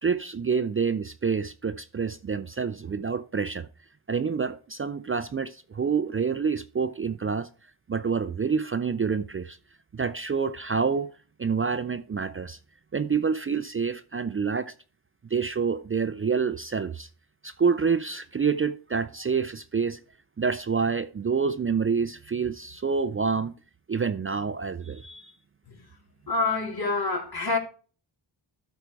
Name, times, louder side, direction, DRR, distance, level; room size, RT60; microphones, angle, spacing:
voice 1, 0.0-3.7 4.1-7.5 7.9-9.6 9.9-11.1 11.4-12.6 12.9-14.7 15.3-17.1 17.4-20.0 20.4-23.5 23.9-25.3, right 5 dB, 30° right, 0.4 m, -27 dB
voice 2, 26.3-27.6, left 3 dB, 50° left, 2.7 m, -26 dB
12.5 x 4.7 x 4.6 m
wide cardioid pair, 115°, 46 cm